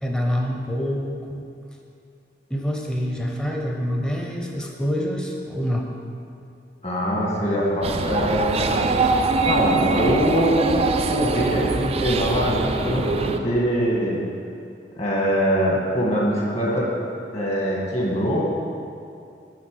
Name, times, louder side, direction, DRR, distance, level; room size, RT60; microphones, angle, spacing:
voice 1, 0.0-1.5 2.5-5.9, equal, 5° left, 0 dB, 0.8 m, -26 dB
voice 2, 6.8-8.9 9.5-14.2 15.0-16.9 17.3-18.4, equal, 35° left, -4 dB, 1.8 m, -23 dB
sound 1, 7.8-13.4, right 3 dB, 35° right, 0.4 m, -23 dB
9.5 x 4.2 x 6.7 m, 2.5 s
head